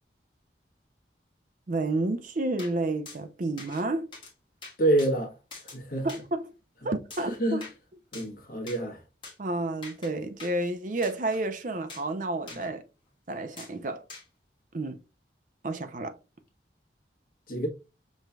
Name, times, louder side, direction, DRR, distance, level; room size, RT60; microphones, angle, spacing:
voice 1, 1.7-4.1 6.0-6.5 6.8-7.6 9.4-12.8 13.3-14.0 14.7-15.0 15.6-16.1, right 2 dB, 45° right, 0.5 m, -30 dB
sound 1, 2.6-2.7 3.1-3.2 3.6-3.8 4.1-4.3 4.6-5.1 5.5-5.8 6.1-6.2 7.1-7.8 8.1-8.3 8.7-8.8 9.2-9.4 9.8-10.1 10.4-10.5 11.0-11.4 11.9-12.1 12.5-12.7 13.6-13.7 14.1-14.3, left 3 dB, 30° left, 1.3 m, -44 dB
voice 2, 4.8-5.3 5.7-6.1 7.2-7.6 8.1-9.0 12.5-12.6 17.5-17.7, right 1 dB, 50° left, 1.1 m, -27 dB
5.4 x 3.1 x 2.2 m
head